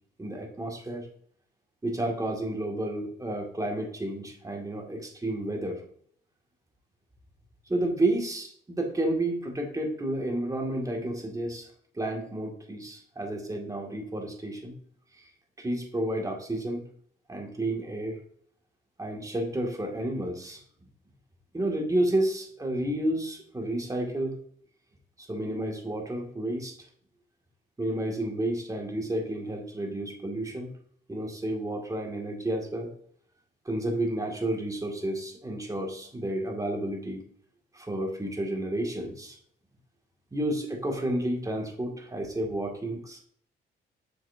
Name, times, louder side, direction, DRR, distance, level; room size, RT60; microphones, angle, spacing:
voice 1, 0.2-1.1 1.8-5.8 7.7-11.7 11.9-14.7 15.6-16.8 17.3-18.2 19.0-20.6 21.5-24.4 25.2-26.8 27.8-30.7 31.1-32.9 33.7-37.2 37.7-39.4 40.3-43.2, right 1 dB, 15° right, 1 dB, 2.2 m, -31 dB
7.9 x 6.2 x 2.7 m, 0.62 s
cardioid pair, 90°, 20 cm